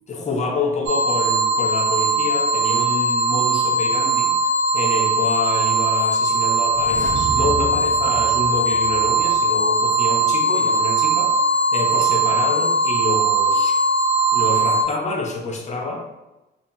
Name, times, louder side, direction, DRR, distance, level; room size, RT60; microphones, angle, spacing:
voice 1, 0.1-4.3 4.7-11.3 11.7-13.8 14.3-16.0, left 3 dB, 35° left, 1 dB, 0.6 m, -27 dB
sound 1, 0.9-14.8, right 2 dB, 90° right, 0.6 m, -19 dB
sound 2, 6.6-9.5 9.8-9.9, right 2 dB, 40° right, 0.5 m, -31 dB
2.4 x 2.1 x 3.8 m, 0.98 s
cardioid pair, 90°, 20 cm